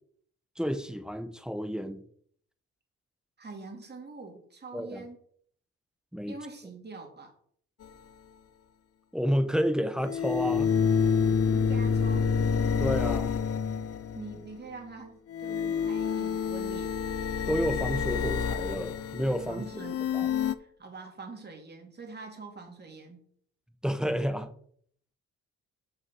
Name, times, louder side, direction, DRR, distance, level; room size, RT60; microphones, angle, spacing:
voice 1, 0.6-2.0 4.7-5.0 6.1-6.4 9.1-10.7 12.8-13.3 17.5-19.7 20.1-20.3 23.8-24.5, equal, ahead, 9 dB, 0.9 m, -30 dB
voice 2, 3.4-5.2 6.3-7.3 11.5-12.3 14.1-16.9 19.5-20.2 20.6-23.2, right 3 dB, 35° right, 3 dB, 2.9 m, -44 dB
sound 1, 7.8-7.9 10.0-14.5 15.3-20.6, left 6 dB, 50° left, 0.7 m, -28 dB
6.4 x 6.3 x 6.2 m, 0.62 s
cardioid pair, 90°, 30 cm